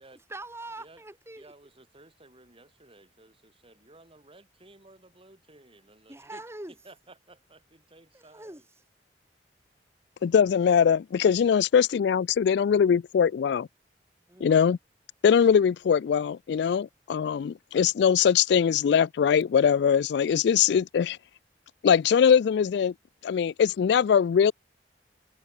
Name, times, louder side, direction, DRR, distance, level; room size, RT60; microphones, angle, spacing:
voice 1, 0.3-1.5 6.1-6.7 8.1-8.8 14.3-14.7, right 2 dB, 15° right, 3.1 m, -43 dB
voice 2, 1.4-6.4 6.8-8.7, right 2 dB, 30° right, 7.1 m, -55 dB
voice 3, 10.2-13.7 14.4-14.8 15.2-21.2 21.8-22.9 23.2-24.5, left 7 dB, 70° left, 0.3 m, -22 dB
head